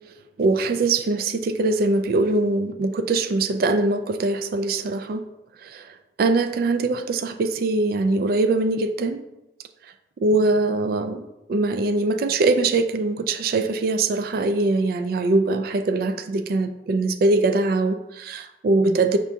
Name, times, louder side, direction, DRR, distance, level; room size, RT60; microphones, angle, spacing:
voice 1, 0.4-5.2 5.6-5.8 6.2-9.2 10.2-11.2 11.5-19.2, right 2 dB, 55° right, 10 dB, 0.3 m, -22 dB
5.0 x 3.4 x 2.7 m, 0.96 s
head